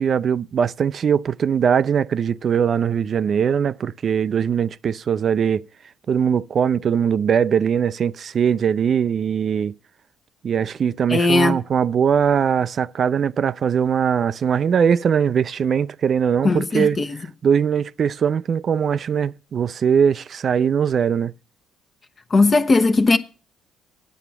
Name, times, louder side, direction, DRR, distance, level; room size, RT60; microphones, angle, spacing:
voice 1, 0.0-5.6 6.1-9.7 10.4-17.0 17.4-21.3, right 7 dB, 50° right, 0.4 m, -20 dB
voice 2, 11.1-11.6 16.4-17.1 22.3-23.2, left 3 dB, 35° left, 1.0 m, -17 dB
9.2 x 7.0 x 6.9 m
hypercardioid pair, 55°, 0 cm